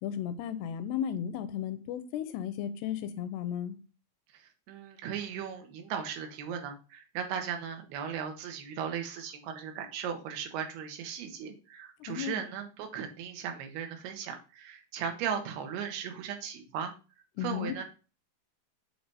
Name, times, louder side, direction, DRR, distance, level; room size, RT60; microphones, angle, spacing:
voice 1, 0.0-3.8 12.1-12.4 17.4-17.7, left 9 dB, 90° left, 2.7 m, -34 dB
voice 2, 4.3-16.9 17.4-17.8, right 8 dB, 80° right, 2.9 m, -37 dB
7.6 x 3.3 x 4.0 m
omnidirectional pair, 4.6 m